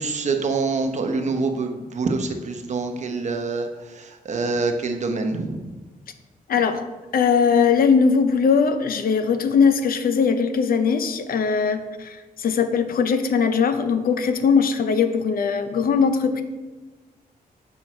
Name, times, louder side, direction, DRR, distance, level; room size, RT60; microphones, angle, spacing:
voice 1, 0.0-5.6, right 3 dB, 50° right, 4 dB, 0.8 m, -26 dB
voice 2, 6.5-6.8 7.1-16.4, left 6 dB, 70° left, 9 dB, 0.6 m, -20 dB
6.2 x 5.4 x 4.3 m, 1.2 s
wide cardioid pair, 135°, 16 cm